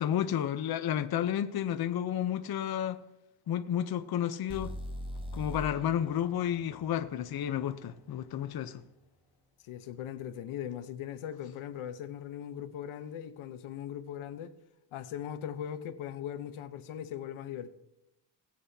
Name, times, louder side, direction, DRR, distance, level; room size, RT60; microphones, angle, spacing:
voice 1, 0.0-3.0 3.5-4.7 5.3-8.8, left 10 dB, 50° left, 0.8 m, -31 dB
sound 1, 4.5-8.4, equal, 10° right, 1.3 m, -43 dB
voice 2, 9.6-14.5 14.9-17.7, left 10 dB, 80° left, 1.0 m, -39 dB
19.5 x 7.9 x 2.8 m
cardioid pair, 115°, 48 cm